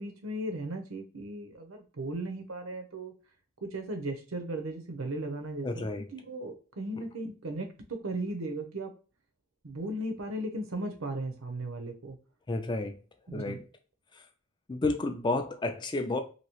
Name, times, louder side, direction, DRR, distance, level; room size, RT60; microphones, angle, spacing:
voice 1, 0.0-3.1 3.6-5.9 6.1-8.9 9.6-12.2 13.3-13.7, right 1 dB, 85° right, 5 dB, 0.7 m, -36 dB
voice 2, 5.6-6.0 12.5-13.0 13.3-13.6 14.1-14.2 14.7-16.2, left 2 dB, 20° left, 6 dB, 0.3 m, -31 dB
2.9 x 2.7 x 2.9 m, 0.36 s
head